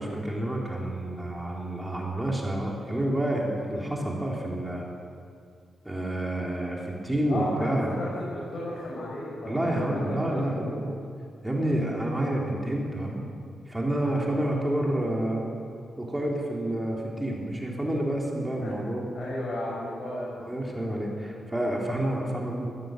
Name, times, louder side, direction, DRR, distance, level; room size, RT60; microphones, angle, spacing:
voice 1, 0.0-4.8 5.8-7.9 9.5-10.9 11.4-13.3 13.7-15.5 16.0-19.1 20.4-22.7, right 1 dB, 10° right, -2 dB, 3.6 m, -29 dB
voice 2, 7.3-10.7 14.0-14.3 18.6-18.7 19.1-20.4, left 1 dB, 50° left, -6 dB, 6.9 m, -34 dB
20.0 x 16.5 x 8.0 m, 2.4 s
cardioid pair, 110°, 0 cm